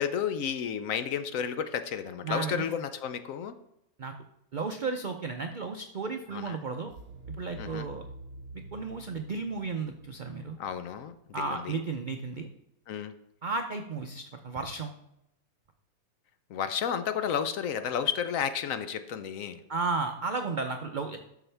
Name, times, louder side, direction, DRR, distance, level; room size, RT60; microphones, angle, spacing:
voice 1, 0.0-3.6 6.3-6.6 7.6-7.9 10.6-11.8 12.9-13.1 16.5-19.6, left 8 dB, 65° left, 10 dB, 0.9 m, -32 dB
voice 2, 2.2-2.7 4.0-4.1 4.5-6.9 7.3-8.0 8.5-10.6 11.3-12.5 13.4-14.9 19.7-21.2, right 4 dB, 70° right, 5 dB, 0.4 m, -33 dB
sound 1, 6.9-11.8, right 2 dB, 50° right, 0.9 m, -47 dB
11.0 x 7.0 x 3.4 m, 0.80 s
omnidirectional pair, 1.7 m